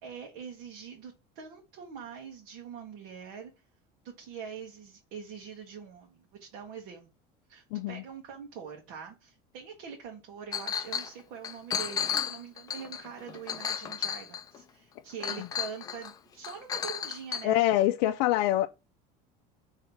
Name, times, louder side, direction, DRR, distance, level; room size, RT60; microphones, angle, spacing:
voice 1, 0.0-3.5 4.0-7.1 7.5-17.7, right 7 dB, 60° right, 1.5 m, -44 dB
voice 2, 7.7-8.0 15.4-15.5 17.4-18.7, left 14 dB, 80° left, 0.4 m, -25 dB
Chink clink, 10.5-11.1 11.4-14.6 15.2-16.1 16.4-17.4, left 8 dB, 20° left, 0.4 m, -33 dB
5.8 x 3.2 x 5.7 m
cardioid pair, 175°, 20 cm